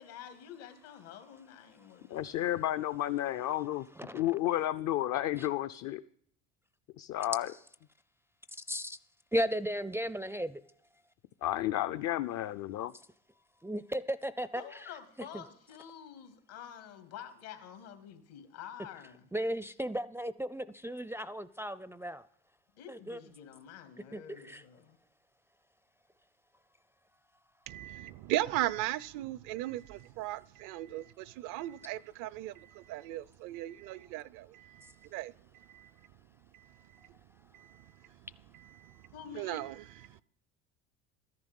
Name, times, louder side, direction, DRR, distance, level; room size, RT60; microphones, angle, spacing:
voice 1, 0.0-2.3 14.5-19.3 22.7-25.0 39.1-39.7, left 9 dB, 75° left, 2.3 m, -49 dB
voice 2, 2.1-3.9 4.1-6.0 7.0-7.5 11.4-12.9, left 13 dB, 55° left, 0.6 m, -32 dB
voice 3, 8.7-9.0 9.3-10.6 13.6-14.6 15.3-15.4 19.3-22.2 22.9-23.2 24.1-24.2 24.5-24.6, equal, 5° right, 0.4 m, -35 dB
voice 4, 27.7-35.9 36.5-37.1 37.5-38.1 38.5-40.2, right 15 dB, 65° right, 0.6 m, -38 dB
13.5 x 10.5 x 5.4 m
hypercardioid pair, 80°, 35 cm